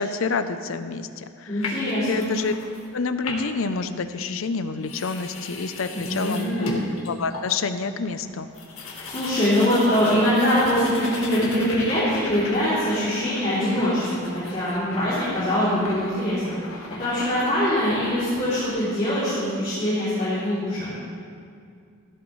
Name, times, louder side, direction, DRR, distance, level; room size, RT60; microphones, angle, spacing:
voice 1, 0.0-2.5 2.9-6.8 7.1-8.5, left 4 dB, 70° left, 11 dB, 0.6 m, -28 dB
voice 2, 1.5-2.3 5.9-6.8 9.0-20.9, equal, 30° left, -12 dB, 3.1 m, -23 dB
sound 1, 1.6-2.9 3.2-3.7 4.4-4.5 4.8-7.7 8.1-8.2 8.4-18.7, left 3 dB, 90° left, 1.6 m, -37 dB
14.5 x 12.0 x 3.2 m, 2.3 s
head